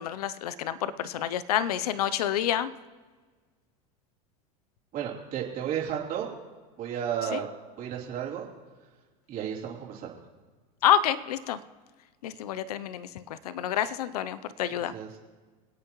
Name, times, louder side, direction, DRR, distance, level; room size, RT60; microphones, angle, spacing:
voice 1, 0.0-2.7 7.3-7.4 10.8-11.6 12.2-14.9, left 10 dB, 90° left, 16 dB, 0.6 m, -28 dB
voice 2, 4.9-6.3 6.8-7.5 7.8-8.5 9.3-10.1 14.9-15.1, right 9 dB, 50° right, -3 dB, 3.1 m, -32 dB
26.0 x 8.7 x 3.0 m, 1.4 s
supercardioid pair, 105°, 19 cm